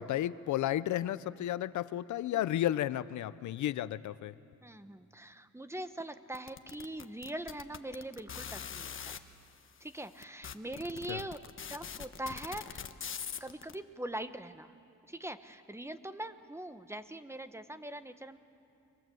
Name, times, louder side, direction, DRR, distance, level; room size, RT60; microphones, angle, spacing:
voice 1, 0.0-4.3 11.1-11.2, left 12 dB, 70° left, 16 dB, 0.7 m, -33 dB
voice 2, 4.6-9.2 9.8-11.4 11.7-12.8 13.4-14.7 15.1-18.4, right 1 dB, 10° right, 10 dB, 1.2 m, -42 dB
sound 1, 6.4-9.2 9.9-10.0 10.2-13.7, left 7 dB, 45° left, 1.3 m, -42 dB
29.5 x 24.0 x 7.9 m, 2.6 s
cardioid pair, 90°, 30 cm